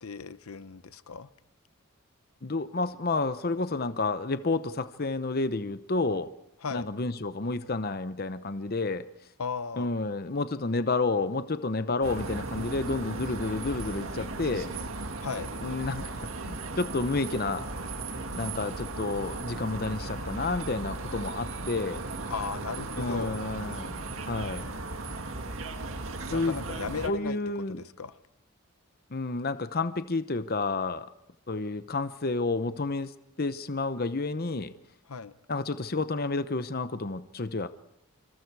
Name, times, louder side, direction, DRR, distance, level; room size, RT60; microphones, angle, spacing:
voice 1, 0.0-1.3 6.6-6.9 9.4-9.9 15.2-15.5 22.3-23.4 26.3-28.2 35.1-35.3, left 5 dB, 80° left, 14 dB, 0.8 m, -36 dB
voice 2, 2.4-6.3 6.7-9.1 9.8-14.7 15.6-17.6 18.4-22.0 23.0-24.7 26.3-26.6 27.0-27.8 29.1-31.1 31.5-33.1 33.4-34.7 35.5-37.7, left 3 dB, 45° left, 12 dB, 0.8 m, -30 dB
sound 1, 12.0-27.1, right 2 dB, 70° right, 1.9 m, -36 dB
27.5 x 26.0 x 4.8 m, 0.81 s
head